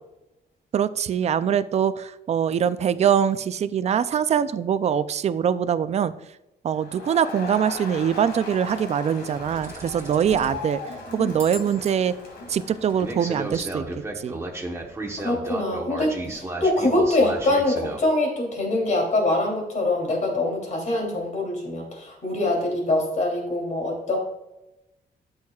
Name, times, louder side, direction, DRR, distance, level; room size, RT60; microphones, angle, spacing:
voice 1, 0.7-6.1 6.6-10.8 11.1-12.1 12.5-13.8 14.2-14.4, right 8 dB, 40° right, 14 dB, 0.4 m, -23 dB
Crowd, 6.7-13.8, left 3 dB, 75° left, 2.2 m, -38 dB
sound 1, 9.3-10.6 11.4-11.9 13.0-18.0, right 2 dB, 15° right, 1.0 m, -34 dB
voice 2, 15.2-24.2, left 2 dB, 45° left, 0 dB, 3.0 m, -24 dB
13.0 x 6.4 x 2.4 m, 0.93 s
wide cardioid pair, 160°, 17 cm